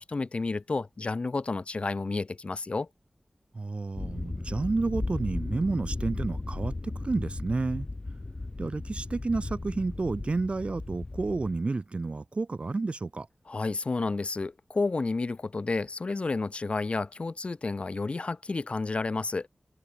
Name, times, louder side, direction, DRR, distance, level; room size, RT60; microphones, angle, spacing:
voice 1, 0.0-2.9 13.5-19.5, left 3 dB, 60° left, 1.3 m, -31 dB
voice 2, 3.5-7.9 8.6-13.3, right 3 dB, 55° right, 1.6 m, -30 dB
sound 1, 4.0-11.6, left 2 dB, 40° left, 1.7 m, -36 dB
wide cardioid pair, 70°, 2 cm